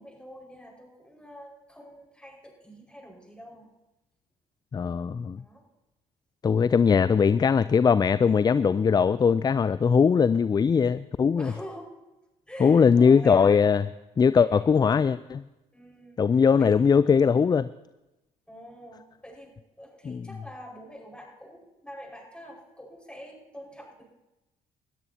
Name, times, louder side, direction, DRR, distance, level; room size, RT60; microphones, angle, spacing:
voice 1, 0.0-3.7 5.4-5.6 11.4-11.9 12.5-13.7 15.7-16.2 16.6-16.7 18.5-24.0, equal, 5° left, -2 dB, 5.2 m, -45 dB
voice 2, 4.7-5.4 6.4-11.5 12.6-13.9 14.2-15.4 16.2-17.7 20.1-20.3, left 6 dB, 25° left, 16 dB, 0.3 m, -20 dB
20.5 x 13.5 x 2.8 m, 0.99 s
hypercardioid pair, 55°, 18 cm